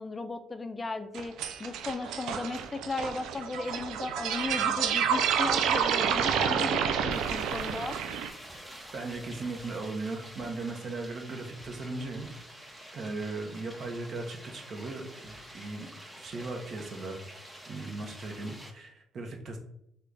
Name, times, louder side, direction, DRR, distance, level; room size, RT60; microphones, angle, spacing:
voice 1, 0.0-8.0, left 3 dB, 25° left, 9 dB, 0.3 m, -36 dB
sound 1, 1.1-8.3, right 7 dB, 90° right, 0.3 m, -29 dB
sound 2, 7.1-18.7, right 1 dB, 10° right, 0.6 m, -48 dB
voice 2, 8.9-12.3 12.9-17.2 17.7-19.6, right 3 dB, 55° right, 3 dB, 0.7 m, -37 dB
3.2 x 2.2 x 3.8 m, 0.74 s
cardioid pair, 90°, 0 cm